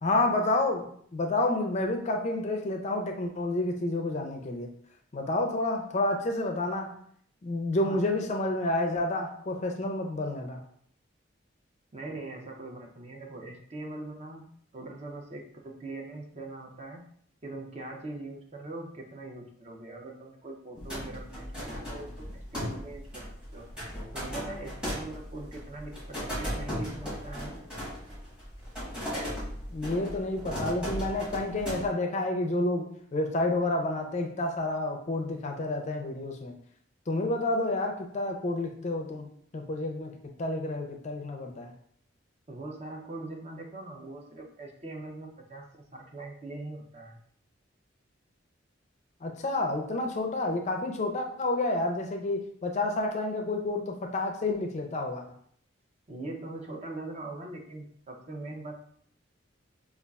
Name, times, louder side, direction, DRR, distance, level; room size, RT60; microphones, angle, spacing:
voice 1, 0.0-4.7 5.1-6.9 7.4-10.6 29.7-36.5 37.1-39.3 39.5-41.7 49.2-55.2, left 2 dB, 35° left, 2 dB, 0.4 m, -29 dB
voice 2, 11.9-14.4 14.7-17.1 17.4-23.2 23.5-23.7 24.1-25.9 26.4-27.6 42.5-47.2 56.1-58.8, right 2 dB, 35° right, 2 dB, 0.5 m, -41 dB
sound 1, 20.7-31.9, equal, 5° right, 1.0 m, -37 dB
5.1 x 2.3 x 2.3 m, 0.64 s
head